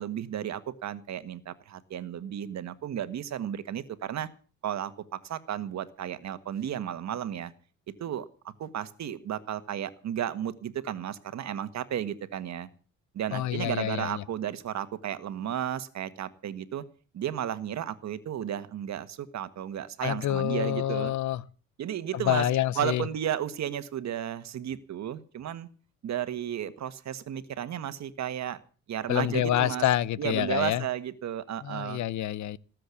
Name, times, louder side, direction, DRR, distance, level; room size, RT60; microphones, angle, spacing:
voice 1, 0.0-4.3 4.6-7.5 8.0-8.2 8.6-12.7 13.1-16.8 17.1-21.1 21.8-22.5 22.7-25.7 26.0-28.6 28.9-29.8 30.2-32.0, right 10 dB, 65° right, 1.6 m, -33 dB
voice 2, 13.3-14.2 20.0-21.4 22.3-23.0 29.1-30.8 31.6-32.6, left 12 dB, 70° left, 0.8 m, -27 dB
18.5 x 7.8 x 8.4 m
cardioid pair, 90°, 30 cm